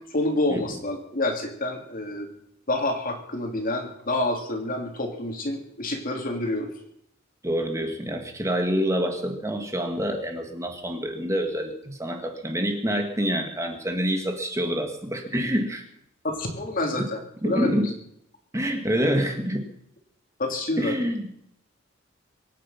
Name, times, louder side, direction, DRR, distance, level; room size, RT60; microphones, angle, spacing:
voice 1, 0.1-2.3 2.7-6.7 16.2-17.2 17.4-17.9 20.4-20.9, left 2 dB, 45° left, 3 dB, 3.2 m, -28 dB
voice 2, 7.4-15.8 17.4-17.9 18.5-19.6 20.8-21.3, equal, 15° right, 4 dB, 1.9 m, -27 dB
24.0 x 9.9 x 5.9 m, 0.71 s
head